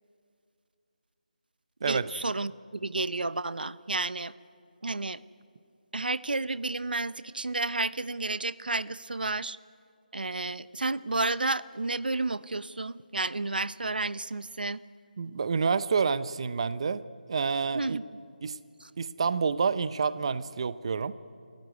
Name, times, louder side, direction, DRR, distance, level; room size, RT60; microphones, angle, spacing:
voice 1, 1.8-4.3 4.8-5.2 5.9-9.6 10.1-14.8 17.7-18.0 18.8-18.9, right 3 dB, 90° right, 17 dB, 0.8 m, -31 dB
voice 2, 15.2-17.0 17.3-18.0 18.4-18.6 19.0-21.1, right 5 dB, 40° right, 16 dB, 0.6 m, -28 dB
27.5 x 14.5 x 9.4 m, 2.4 s
figure-of-eight pair, 170°, 5 cm